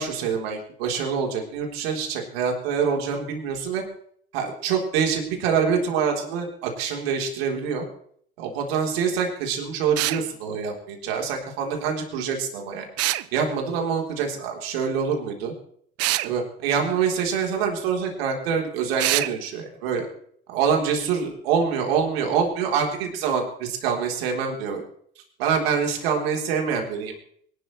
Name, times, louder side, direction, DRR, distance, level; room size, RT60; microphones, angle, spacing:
voice 1, 0.0-3.8 4.3-7.9 8.4-12.9 13.3-15.5 16.2-20.1 20.5-24.8 25.4-27.1, right 6 dB, 75° right, 1 dB, 3.9 m, -25 dB
sound 1, 10.0-10.2 13.0-13.3 16.0-16.3 19.0-19.3, right 17 dB, 55° right, 0.7 m, -24 dB
24.0 x 12.5 x 3.3 m, 0.64 s
hypercardioid pair, 80°, 30 cm